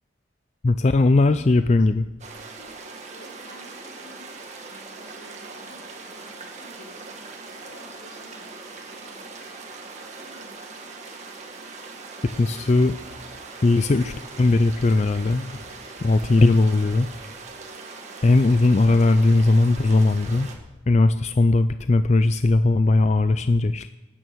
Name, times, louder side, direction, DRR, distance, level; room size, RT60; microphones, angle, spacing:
voice 1, 0.6-2.0 12.2-13.0 13.6-15.6 16.0-17.1 18.2-20.5 20.9-23.9, left 2 dB, 35° left, 11 dB, 0.4 m, -19 dB
voice 2, 1.3-1.8 2.6-2.7 3.1-7.1 7.4-9.3 10.2-10.6, left 1 dB, 80° left, 1 dB, 3.1 m, -50 dB
sound 1, 2.2-20.5, right 3 dB, 40° right, 1.8 m, -41 dB
17.0 x 9.5 x 6.2 m, 1.1 s
head